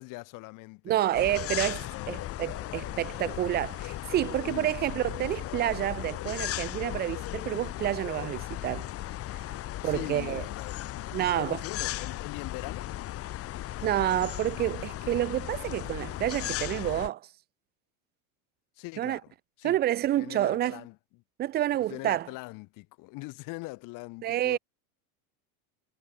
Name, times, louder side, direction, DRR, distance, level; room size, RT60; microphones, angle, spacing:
voice 1, 0.0-2.4 4.4-4.7 9.8-12.9 18.8-19.3 19.6-19.8 20.2-21.2 21.9-24.6, left 24 dB, 50° left, 1.7 m, -42 dB
voice 2, 0.9-8.9 9.8-10.4 11.1-11.6 13.8-17.2 19.0-19.2 19.6-20.8 21.4-22.3 24.2-24.6, right 13 dB, 25° right, 0.5 m, -29 dB
sound 1, 1.1-17.1, left 14 dB, 35° left, 1.4 m, -36 dB
supercardioid pair, 145°, 42 cm